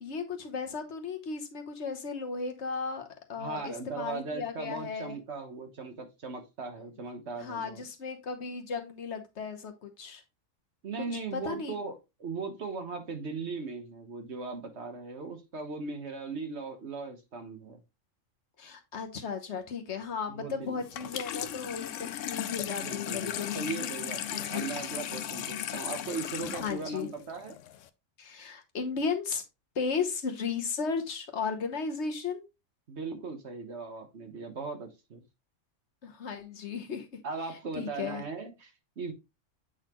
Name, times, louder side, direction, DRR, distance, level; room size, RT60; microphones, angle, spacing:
voice 1, 0.0-5.2 7.3-10.2 11.3-11.7 18.6-24.7 26.6-27.1 28.2-29.4 29.7-32.5 36.0-37.1 37.7-38.2, left 5 dB, 60° left, 1.3 m, -35 dB
voice 2, 3.4-7.8 10.8-11.9 12.2-17.8 20.3-20.8 21.4-21.6 22.8-27.6 32.9-35.2 37.2-39.1, right 4 dB, 60° right, 1.4 m, -38 dB
Water tap faucet / Sink (filling or washing), 20.8-27.9, left 10 dB, 75° left, 0.9 m, -36 dB
8.1 x 4.0 x 2.9 m
omnidirectional pair, 1.3 m